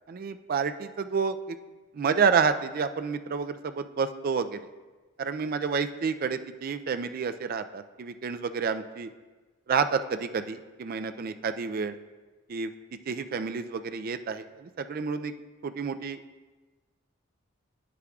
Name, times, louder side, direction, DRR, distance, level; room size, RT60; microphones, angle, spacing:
voice 1, 0.1-1.6 1.9-4.6 5.2-9.1 9.7-12.0 12.5-12.7 13.1-15.3 15.6-16.2, right 5 dB, 45° right, 10 dB, 0.3 m, -29 dB
9.9 x 8.3 x 2.3 m, 1.3 s
head